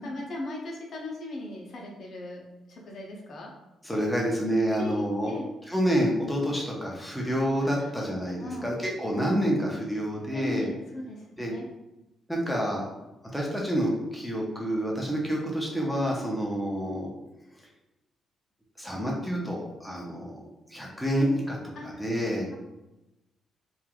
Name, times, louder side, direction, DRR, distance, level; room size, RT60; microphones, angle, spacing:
voice 1, 0.0-3.5 4.8-5.5 7.8-7.9 8.4-8.7 10.3-11.7 21.7-21.9, left 2 dB, 55° left, -1 dB, 0.6 m, -38 dB
voice 2, 3.8-5.3 5.7-10.7 11.4-11.5 12.3-12.8 13.3-17.1 18.8-20.4 20.7-21.6 21.8-22.5, equal, ahead, -3 dB, 0.5 m, -28 dB
3.0 x 2.3 x 2.3 m, 0.99 s
cardioid pair, 115°, 0 cm